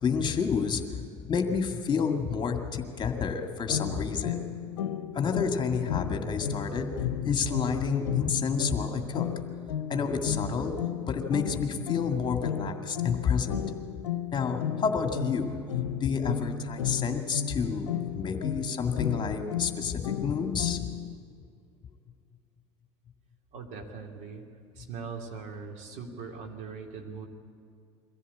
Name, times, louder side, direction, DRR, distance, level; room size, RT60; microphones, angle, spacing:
voice 1, 0.0-4.5 5.1-9.3 9.9-10.7 11.1-13.6 14.3-15.6 16.0-20.9, left 6 dB, 30° left, 5 dB, 2.1 m, -29 dB
sound 1, 3.7-21.1, left 8 dB, 80° left, 0.8 m, -34 dB
voice 2, 23.5-24.4 24.8-27.3, right 5 dB, 55° right, 2 dB, 2.9 m, -40 dB
23.0 x 15.5 x 8.5 m, 2.4 s
hypercardioid pair, 75°, 15 cm